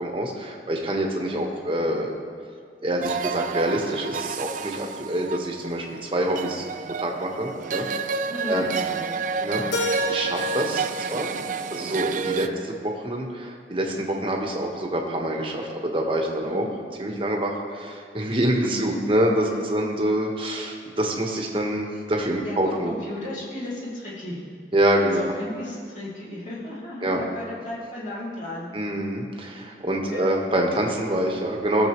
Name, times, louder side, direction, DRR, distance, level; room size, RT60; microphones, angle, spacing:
voice 1, 0.0-2.1 2.8-6.6 7.0-8.2 8.5-8.7 9.4-9.6 10.1-11.3 11.7-16.6 17.0-22.9 24.7-25.2 27.0-27.2 28.7-31.9, right 1 dB, 30° right, 0 dB, 1.2 m, -26 dB
sound 1, 3.0-12.5, right 5 dB, 45° right, 0.3 m, -30 dB
voice 2, 8.3-9.7 12.4-12.6 16.4-16.7 18.6-18.9 19.5-19.6 22.4-24.4 25.1-28.7 30.1-30.3, left 1 dB, 45° left, -7 dB, 2.5 m, -35 dB
Keyboard (musical), 9.7-12.6, left 1 dB, 80° left, 1.3 m, -32 dB
18.5 x 7.0 x 3.1 m, 2.1 s
head